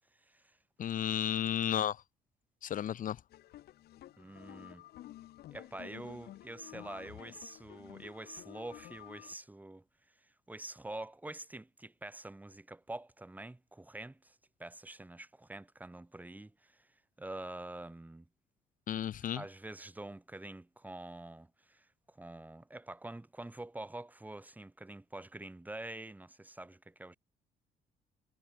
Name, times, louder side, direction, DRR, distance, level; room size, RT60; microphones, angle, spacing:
voice 1, 0.8-2.0 2.6-3.2 18.9-19.4, left 10 dB, 50° left, 1.6 m, -33 dB
sound 1, 3.3-9.3, left 14 dB, 70° left, 2.6 m, -52 dB
voice 2, 4.2-4.9 5.5-9.8 10.5-16.9 17.2-18.3 19.3-27.2, right 2 dB, 10° right, 2.9 m, -46 dB
cardioid pair, 110°, 17 cm